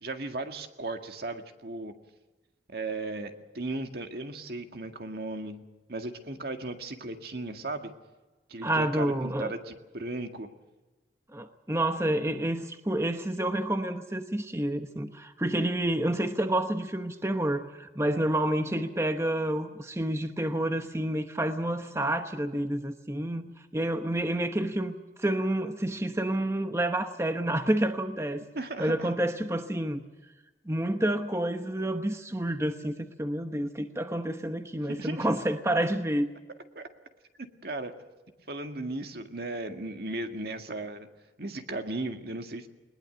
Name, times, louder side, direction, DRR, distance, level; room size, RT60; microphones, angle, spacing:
voice 1, 0.0-1.9 2.7-5.6 5.9-7.9 8.5-10.5 28.5-29.1 34.9-35.3 36.8-36.9 37.4-37.9 38.5-41.1 41.4-42.7, right 2 dB, 60° right, 6 dB, 2.0 m, -36 dB
voice 2, 8.6-9.5 11.3-28.4 28.8-30.0 30.7-36.3, right 1 dB, 15° right, 7 dB, 1.0 m, -29 dB
20.5 x 20.5 x 7.9 m, 1.2 s
head